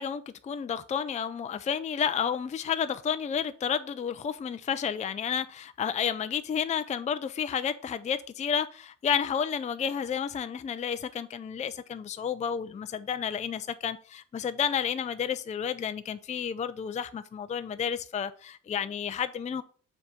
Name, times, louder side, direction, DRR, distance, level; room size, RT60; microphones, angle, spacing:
voice 1, 0.0-19.6, left 7 dB, 25° left, 0.4 m, -31 dB
7.0 x 3.5 x 5.2 m
cardioid pair, 90°, 30 cm